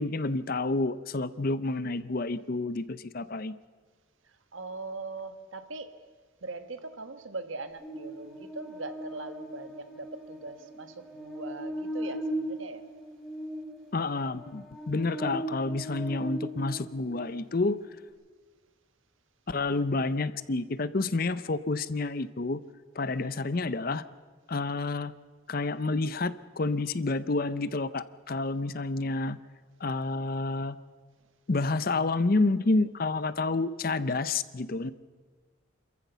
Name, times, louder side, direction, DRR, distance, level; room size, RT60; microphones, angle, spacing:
voice 1, 0.0-3.5 13.9-17.8 19.5-22.6 23.0-24.0 24.5-25.1 25.5-29.4 29.8-30.8 31.5-34.9, left 3 dB, 45° left, 15 dB, 0.6 m, -29 dB
voice 2, 4.5-5.9 6.4-12.8, right 3 dB, 75° right, 9 dB, 1.4 m, -41 dB
Buzz, 7.8-17.3, right 1 dB, ahead, 4.1 m, -38 dB
28.0 x 14.5 x 6.9 m, 1.4 s
head